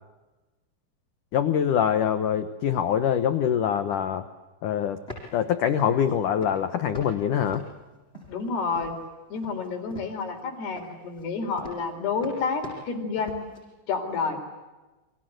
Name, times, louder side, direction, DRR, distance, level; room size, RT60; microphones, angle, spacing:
voice 1, 1.3-4.2 4.6-5.0 5.3-7.6, left 9 dB, 80° left, 10 dB, 1.8 m, -24 dB
sound 1, 4.8-5.4 5.8-6.1 6.4-7.1 7.4-8.5 8.8-9.1 9.3-10.4 10.8-13.6, left 1 dB, 10° left, 7.1 m, -43 dB
voice 2, 8.3-9.0 9.3-13.5 13.9-14.4, left 4 dB, 60° left, 5 dB, 5.8 m, -29 dB
29.5 x 25.0 x 7.9 m, 1.1 s
omnidirectional pair, 5.5 m